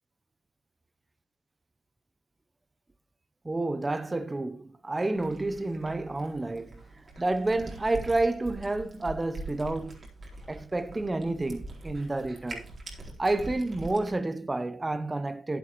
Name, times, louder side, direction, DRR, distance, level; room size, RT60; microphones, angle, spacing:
voice 1, 3.4-6.8 7.2-10.0 10.5-12.7 13.2-15.6, right 2 dB, 25° right, 0.8 m, -30 dB
Cat, 5.2-14.1, right 2 dB, 45° right, 4.1 m, -43 dB
13.0 x 7.9 x 3.1 m
hypercardioid pair, 45°, 0 cm